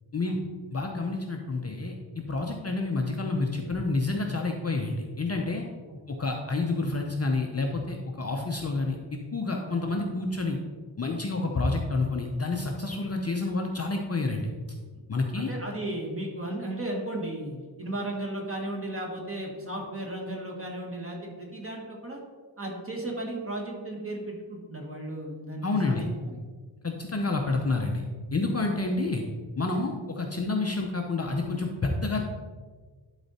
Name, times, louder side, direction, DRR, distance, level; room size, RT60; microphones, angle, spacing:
voice 1, 0.7-5.6 6.1-10.6 11.0-14.5 15.1-15.5 25.6-26.0 26.8-28.0 28.3-29.2 29.6-32.2, left 3 dB, 30° left, 1 dB, 0.6 m, -29 dB
voice 2, 15.3-22.2 22.6-26.4, right 1 dB, 25° right, -1 dB, 1.6 m, -35 dB
11.5 x 4.0 x 4.1 m, 1.5 s
wide cardioid pair, 170°, 49 cm